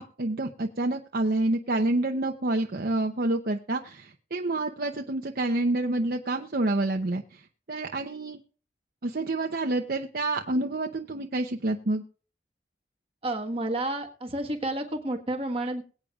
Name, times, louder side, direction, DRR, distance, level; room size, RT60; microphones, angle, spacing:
voice 1, 0.0-8.4 9.0-12.0, right 2 dB, 55° right, 3 dB, 0.8 m, -28 dB
voice 2, 13.2-15.8, right 1 dB, 30° right, 2 dB, 1.5 m, -30 dB
22.5 x 8.6 x 2.4 m, 0.38 s
head